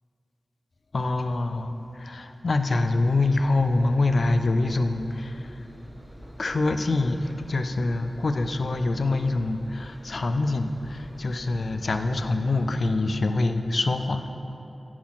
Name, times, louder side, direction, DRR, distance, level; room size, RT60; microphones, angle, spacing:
voice 1, 0.9-5.6 6.4-14.3, left 2 dB, 70° left, 8 dB, 0.3 m, -25 dB
Engine, 2.7-12.9, right 1 dB, 35° right, 0.9 m, -47 dB
6.1 x 4.1 x 5.7 m, 2.8 s
cardioid pair, 50°, 0 cm